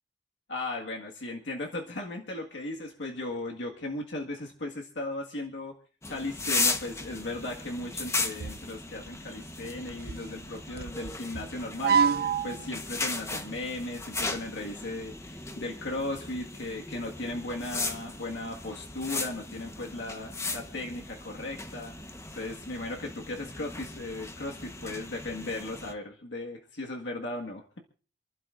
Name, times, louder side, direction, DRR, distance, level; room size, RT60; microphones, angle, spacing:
voice 1, 0.5-5.8 6.1-21.9 22.3-27.8, left 2 dB, 80° left, 0 dB, 1.8 m, -37 dB
sound 1, 6.0-25.9, left 3 dB, 15° left, 1.1 m, -37 dB
sound 2, 8.0-8.7 9.0-9.2 9.6-12.7 13.3-13.6, right 6 dB, 60° right, 0.5 m, -28 dB
28.5 x 11.5 x 2.5 m, 0.39 s
head